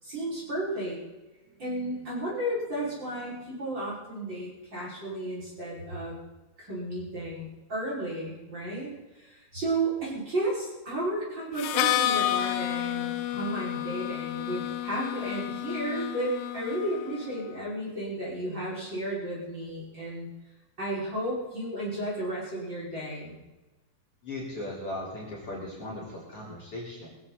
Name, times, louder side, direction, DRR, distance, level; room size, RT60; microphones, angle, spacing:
voice 1, 0.0-1.0 1.3-6.1 6.6-20.3 20.8-23.3, right 1 dB, 25° right, -7 dB, 6.3 m, -33 dB
Harmonica, 11.6-17.3, left 13 dB, 85° left, 3.0 m, -30 dB
voice 2, 24.2-27.1, left 1 dB, 35° left, -5 dB, 4.9 m, -38 dB
22.0 x 15.5 x 4.3 m, 1.1 s
omnidirectional pair, 4.9 m